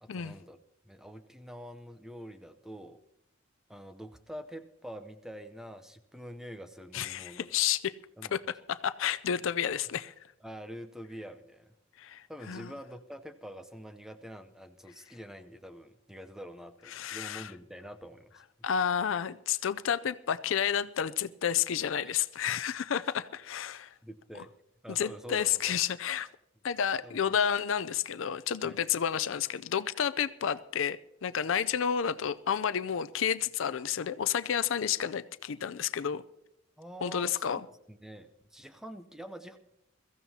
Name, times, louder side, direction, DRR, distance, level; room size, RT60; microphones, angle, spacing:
voice 1, 0.0-0.6 0.8-3.0 3.7-7.5 8.2-8.4 10.4-11.8 12.0-18.5 22.0-22.1 24.0-24.5 24.8-25.8 27.0-27.3 28.6-28.8 36.8-39.6, equal, ahead, 9 dB, 0.6 m, -46 dB
voice 2, 6.9-7.9 8.3-8.4 8.7-10.1 12.0-12.7 16.9-17.5 18.6-23.9 24.9-26.3 26.6-36.2 37.0-37.6, left 8 dB, 70° left, 15 dB, 0.4 m, -30 dB
22.5 x 14.5 x 2.8 m, 0.81 s
head